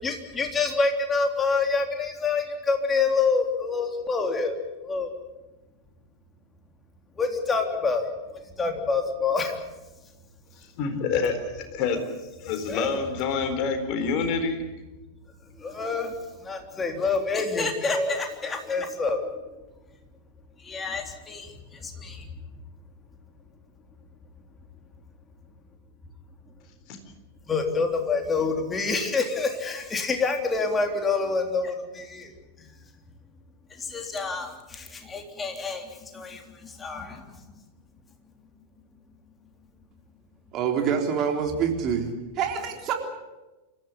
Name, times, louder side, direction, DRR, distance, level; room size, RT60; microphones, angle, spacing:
voice 1, 0.0-5.1 7.2-9.6 12.7-12.9 15.5-19.4 20.6-22.3 27.5-32.3 32.6-32.7 33.7-37.6, left 4 dB, 15° left, 4 dB, 3.5 m, -27 dB
voice 2, 10.5-12.0 12.4-14.6 26.9-27.0, left 5 dB, 40° left, 7 dB, 4.1 m, -27 dB
voice 3, 40.5-42.9, right 7 dB, 35° right, 3 dB, 3.7 m, -26 dB
27.5 x 15.0 x 9.8 m, 1.1 s
figure-of-eight pair, 90°, 0 cm